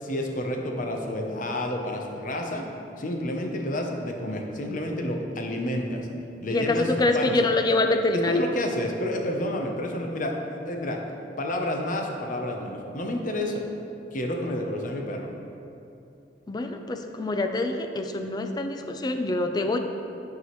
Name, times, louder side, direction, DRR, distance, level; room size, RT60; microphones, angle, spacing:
voice 1, 0.0-2.7 3.0-6.1 6.4-7.5 8.1-11.0 11.4-13.6 14.1-15.3, left 1 dB, 45° left, 2 dB, 0.7 m, -29 dB
voice 2, 6.5-8.4 16.5-19.8, left 2 dB, 25° left, 6 dB, 0.4 m, -25 dB
11.0 x 4.8 x 3.1 m, 2.7 s
head